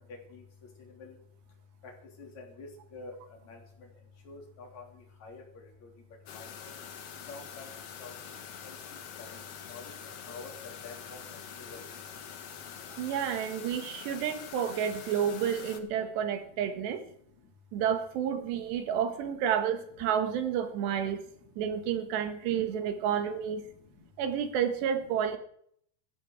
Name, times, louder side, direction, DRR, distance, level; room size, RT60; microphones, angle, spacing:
voice 1, 2.6-3.1 3.5-3.6 4.3-4.8 5.2-5.4 6.3-6.7 7.3-7.4 8.0-8.1 8.6-8.8 9.2-9.3 9.7-9.8 10.3-10.5 10.8-11.2 11.7-11.8, left 4 dB, 45° left, -1 dB, 4.6 m, -46 dB
sound 1, 6.3-15.8, left 7 dB, 75° left, 1.4 m, -45 dB
voice 2, 13.0-17.0 17.7-21.2 21.6-23.6 24.2-25.4, right 8 dB, 85° right, 7 dB, 3.8 m, -30 dB
16.0 x 14.5 x 4.9 m, 0.65 s
omnidirectional pair, 4.8 m